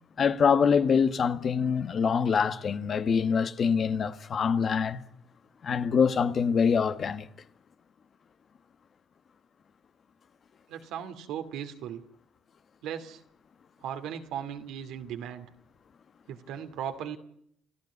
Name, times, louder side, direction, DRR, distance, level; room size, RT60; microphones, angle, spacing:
voice 1, 0.2-5.0 5.6-7.3, left 6 dB, 50° left, 1.4 m, -25 dB
voice 2, 10.7-12.0 12.8-13.2 13.8-15.5 16.3-17.2, right 9 dB, 80° right, 2.4 m, -37 dB
28.5 x 15.0 x 9.7 m
supercardioid pair, 70°, 0 cm